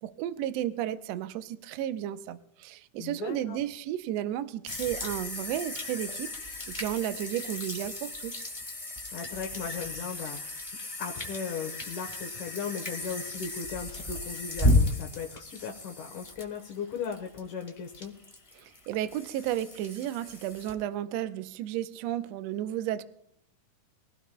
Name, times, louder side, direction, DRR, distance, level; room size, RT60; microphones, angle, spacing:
voice 1, 0.0-8.3 18.6-23.0, right 12 dB, 80° right, 11 dB, 1.6 m, -33 dB
voice 2, 3.0-3.6 9.1-10.6 11.0-18.1, left 6 dB, 75° left, 1 dB, 2.6 m, -37 dB
sound 1, 4.7-20.7, left 1 dB, 15° left, 1.1 m, -34 dB
23.5 x 16.0 x 2.2 m, 0.69 s
omnidirectional pair, 3.7 m